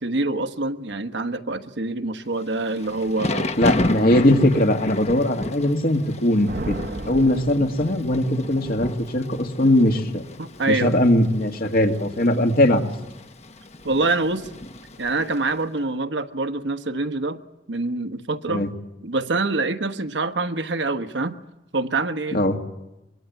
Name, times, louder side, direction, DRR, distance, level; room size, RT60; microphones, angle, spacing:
voice 1, 0.0-3.5 10.4-10.9 13.8-14.5 15.0-17.4 17.7-18.7 19.0-21.4 21.7-22.4, right 2 dB, 80° right, 9 dB, 1.3 m, -25 dB
Thunder / Rain, 2.5-15.5, left 1 dB, 35° left, 1.1 m, -32 dB
voice 2, 3.6-6.7 7.1-10.2 10.7-12.9 18.5-18.7 22.3-22.6, left 1 dB, 55° left, 4 dB, 2.2 m, -20 dB
sound 1, 6.5-8.4, right 1 dB, 50° right, 1.0 m, -33 dB
24.5 x 22.5 x 9.5 m, 0.94 s
head